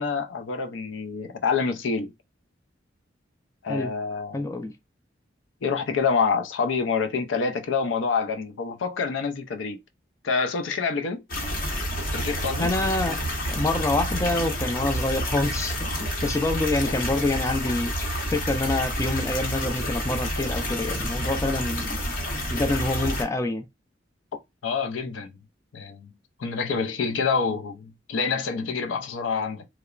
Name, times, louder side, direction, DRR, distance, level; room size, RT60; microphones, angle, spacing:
voice 1, 0.0-2.1 3.6-4.4 5.6-9.8 10.2-11.2 12.1-12.7 24.6-25.4 25.7-26.1 26.4-29.7, left 5 dB, 85° left, 0.5 m, -27 dB
voice 2, 4.3-4.7 12.6-13.2 13.5-22.0 22.5-23.6, left 2 dB, 15° left, 0.3 m, -26 dB
sound 1, 11.3-23.2, equal, 50° left, 0.8 m, -29 dB
2.9 x 2.0 x 2.3 m
head